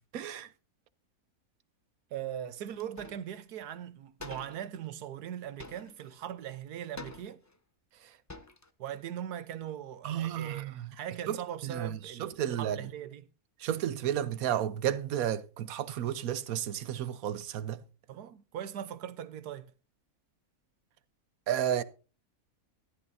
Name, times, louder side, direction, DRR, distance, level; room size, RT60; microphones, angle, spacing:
voice 1, 0.1-0.5 10.0-10.9 11.3-11.4 11.6-12.8 13.6-17.8 21.5-21.8, right 10 dB, 70° right, 1.2 m, -32 dB
voice 2, 2.1-7.4 8.8-13.3 18.1-19.7, right 10 dB, 85° right, 1.4 m, -40 dB
sound 1, 2.8-3.3 3.6-3.7 4.2-4.7 5.6-6.3 7.0-7.6 8.0-8.1 8.3-8.7, left 2 dB, 20° left, 0.5 m, -47 dB
14.0 x 11.5 x 2.7 m
omnidirectional pair, 1.6 m